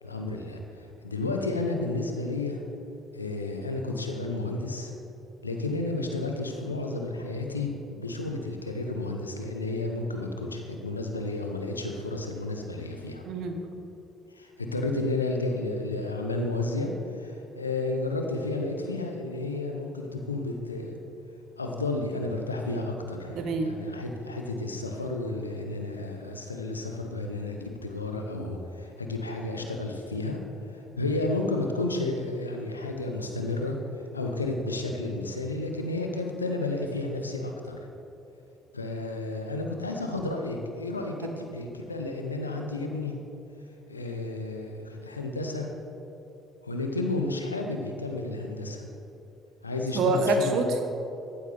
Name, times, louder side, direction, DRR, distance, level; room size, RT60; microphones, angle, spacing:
voice 1, 0.0-2.6 3.1-4.9 5.4-13.2 14.3-21.0 21.6-30.4 30.7-37.8 38.7-43.2 43.9-45.7 46.6-48.8 49.6-50.6, left 2 dB, 90° left, 3 dB, 0.7 m, -32 dB
voice 2, 13.2-13.6 23.3-23.7 49.9-50.8, right 2 dB, 60° right, 6 dB, 1.0 m, -26 dB
14.5 x 8.2 x 3.4 m, 2.9 s
figure-of-eight pair, 50°, 0 cm